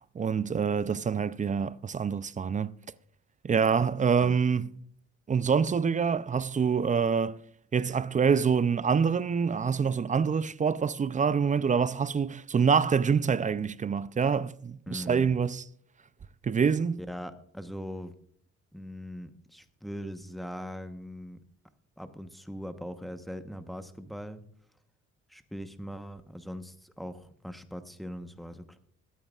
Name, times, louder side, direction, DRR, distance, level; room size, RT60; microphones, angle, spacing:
voice 1, 0.1-2.7 3.4-4.7 5.3-7.4 7.7-15.6 16.4-17.0, right 6 dB, 25° right, 0.5 m, -26 dB
voice 2, 14.9-15.4 17.0-18.1 18.7-21.4 22.0-24.4 25.3-28.8, equal, ahead, 1.0 m, -41 dB
22.0 x 8.9 x 2.4 m
cardioid pair, 90°, 30 cm